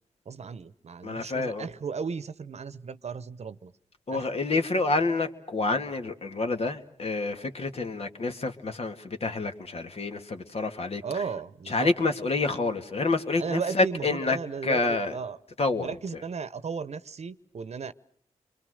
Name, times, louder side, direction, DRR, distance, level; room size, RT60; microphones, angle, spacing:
voice 1, 0.2-3.7 4.1-4.3 11.0-11.9 13.4-15.4 15.8-17.9, right 5 dB, 60° right, 15 dB, 1.0 m, -35 dB
voice 2, 1.0-1.7 4.1-11.0 11.7-14.4 14.6-15.1 15.6-15.9, left 3 dB, 55° left, 6 dB, 2.2 m, -28 dB
29.5 x 23.5 x 6.5 m, 0.65 s
cardioid pair, 50°, 13 cm